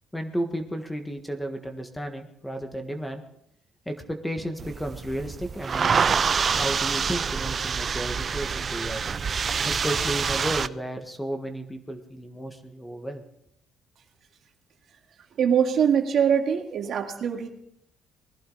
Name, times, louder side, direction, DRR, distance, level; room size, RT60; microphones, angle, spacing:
voice 1, 0.1-3.2 3.8-6.2 6.5-9.0 9.6-13.2, equal, 5° left, 6 dB, 1.5 m, -33 dB
sound 1, 4.6-10.7, right 6 dB, 40° right, 0.4 m, -26 dB
voice 2, 15.4-17.5, right 8 dB, 60° right, 3 dB, 1.9 m, -23 dB
20.0 x 11.5 x 4.0 m, 0.75 s
cardioid pair, 105°, 0 cm